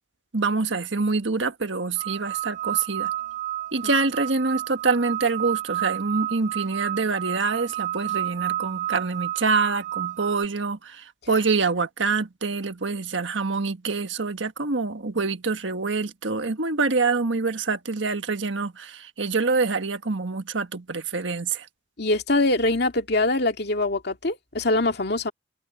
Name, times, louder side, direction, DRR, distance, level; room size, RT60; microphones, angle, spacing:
voice 1, 0.3-3.1 3.7-21.7, right 4 dB, 85° right, 1.5 m, -26 dB
sound 1, 2.0-10.4, right 14 dB, 40° right, 1.3 m, -31 dB
voice 2, 22.0-25.3, left 2 dB, 60° left, 2.5 m, -23 dB
head